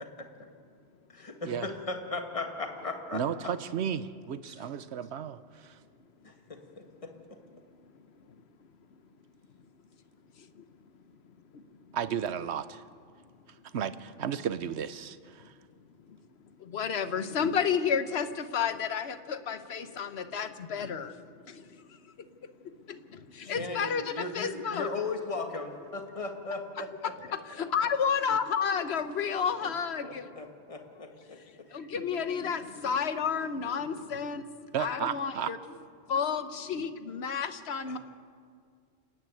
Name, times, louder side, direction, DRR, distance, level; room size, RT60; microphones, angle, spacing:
voice 1, 1.1-3.5 4.4-4.7 6.2-7.1 23.4-26.9 27.3-27.4 30.0-31.9 37.9-38.0, left 3 dB, 30° left, 1.7 m, -37 dB
voice 2, 3.1-5.8 11.9-12.8 13.7-15.5 34.7-35.5, right 8 dB, 70° right, 1.0 m, -33 dB
voice 3, 11.5-11.9 16.1-16.2 16.6-24.9 27.3-30.4 31.7-35.6 36.1-38.0, left 6 dB, 65° left, 1.2 m, -32 dB
29.0 x 10.0 x 9.1 m
omnidirectional pair, 1.2 m